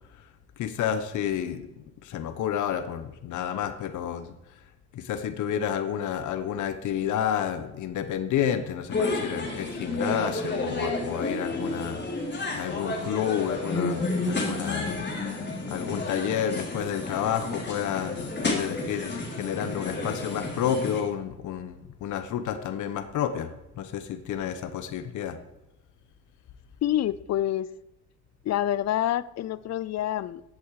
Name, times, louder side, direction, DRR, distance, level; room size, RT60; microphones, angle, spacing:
voice 1, 0.6-4.3 4.9-15.1 15.7-25.4, left 9 dB, 80° left, 10 dB, 1.0 m, -30 dB
sound 1, 8.9-21.0, left 2 dB, 35° left, 3.7 m, -31 dB
voice 2, 26.8-27.7 28.4-30.4, left 12 dB, 60° left, 19 dB, 0.6 m, -27 dB
14.5 x 8.3 x 4.9 m, 0.93 s
cardioid pair, 90°, 30 cm